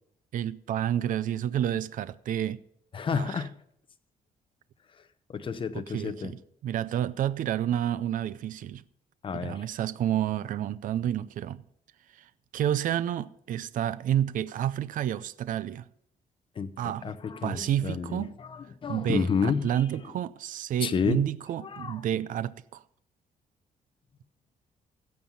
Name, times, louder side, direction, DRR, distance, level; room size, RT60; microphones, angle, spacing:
voice 1, 0.3-2.6 3.1-3.4 5.9-8.8 9.3-11.6 12.1-15.9 16.8-17.2 17.4-18.3 18.9-22.8, right 11 dB, 60° right, 0.5 m, -30 dB
voice 2, 2.9-3.5 5.3-6.3 9.2-9.6 16.6-16.7 17.0-19.7 20.8-21.2 21.6-22.0, left 6 dB, 35° left, 0.8 m, -30 dB
16.0 x 7.4 x 5.5 m
cardioid pair, 145°, 15 cm